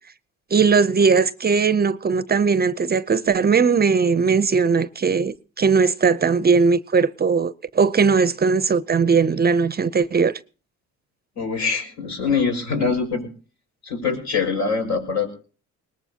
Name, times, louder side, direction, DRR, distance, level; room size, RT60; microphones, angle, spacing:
voice 1, 0.5-10.3, right 5 dB, 30° right, 0.6 m, -19 dB
voice 2, 11.4-13.2 13.8-15.3, left 5 dB, 65° left, 5.6 m, -23 dB
21.0 x 19.0 x 2.9 m
cardioid pair, 90°, 30 cm